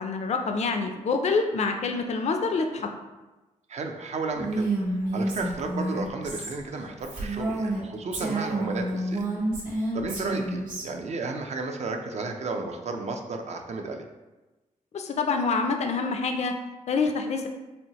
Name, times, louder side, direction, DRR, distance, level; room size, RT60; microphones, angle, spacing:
voice 1, 0.0-2.9 14.9-16.5 16.9-17.5, left 4 dB, 55° left, 5 dB, 0.4 m, -26 dB
voice 2, 3.7-9.2 9.9-14.1, right 3 dB, 55° right, 4 dB, 0.5 m, -33 dB
Female speech woman speaking, 4.3-7.8 8.1-10.8, right 1 dB, 80° right, 1.2 m, -29 dB
4.3 x 2.7 x 2.9 m, 1.1 s
cardioid pair, 75°, 14 cm